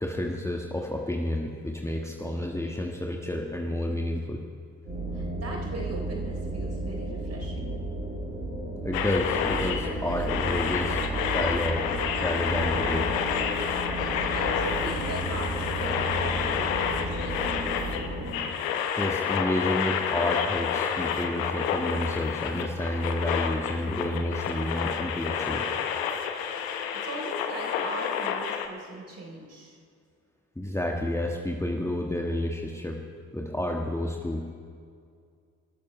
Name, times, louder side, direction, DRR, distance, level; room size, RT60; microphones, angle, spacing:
voice 1, 0.0-4.4 8.8-11.0 11.3-11.8 12.2-13.1 19.0-25.7 30.5-33.0 33.3-34.4, left 1 dB, 5° left, 0 dB, 1.6 m, -30 dB
sound 1, 4.8-18.3, right 2 dB, 90° right, 4.3 m, -33 dB
voice 2, 5.1-7.7 14.1-17.7 27.0-29.8, right 1 dB, 35° right, 0 dB, 3.8 m, -39 dB
sound 2, 8.9-28.7, left 8 dB, 70° left, 1.0 m, -29 dB
27.0 x 13.5 x 3.3 m, 2.2 s
figure-of-eight pair, 45°, 41 cm